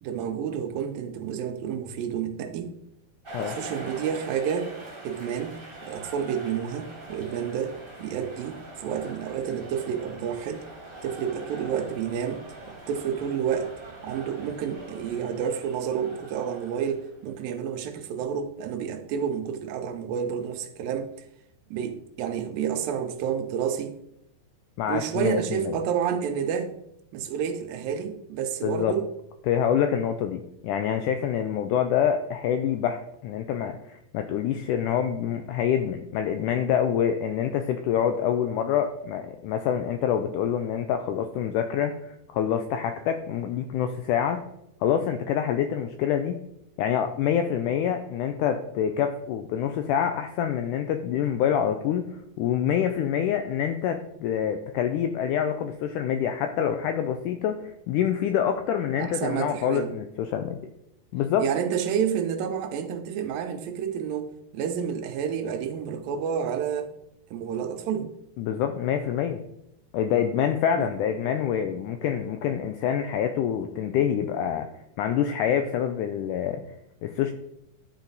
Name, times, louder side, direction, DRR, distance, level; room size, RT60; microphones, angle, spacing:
voice 1, 0.0-2.7 3.4-4.7 5.0-10.6 11.0-12.4 12.9-13.7 14.0-21.1 21.7-24.0 24.9-26.7 27.1-29.1 59.0-59.9 61.4-64.3 64.5-66.9 67.3-68.1 70.8-70.9, right 8 dB, 80° right, 2.4 m, -29 dB
sound 1, 3.2-17.4, right 2 dB, 20° right, 1.5 m, -43 dB
voice 2, 24.8-25.8 28.6-28.9 29.5-44.4 44.8-46.4 46.8-60.6 61.1-61.5 68.4-69.4 69.9-74.7 75.0-76.6 77.0-77.3, left 9 dB, 85° left, 1.8 m, -26 dB
11.5 x 4.3 x 3.9 m
omnidirectional pair, 4.1 m